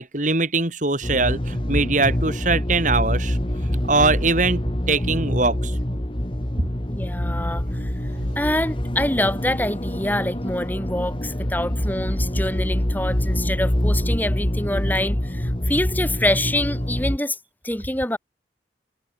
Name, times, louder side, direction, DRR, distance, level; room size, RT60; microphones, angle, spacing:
voice 1, 0.0-4.6 4.9-5.7 8.1-8.3, right 3 dB, 45° right, 4.6 m, -22 dB
sound 1, 1.0-17.2, equal, 30° left, 1.9 m, -25 dB
voice 2, 6.9-7.9 8.4-17.4 17.6-18.2, left 1 dB, 10° left, 6.3 m, -26 dB
head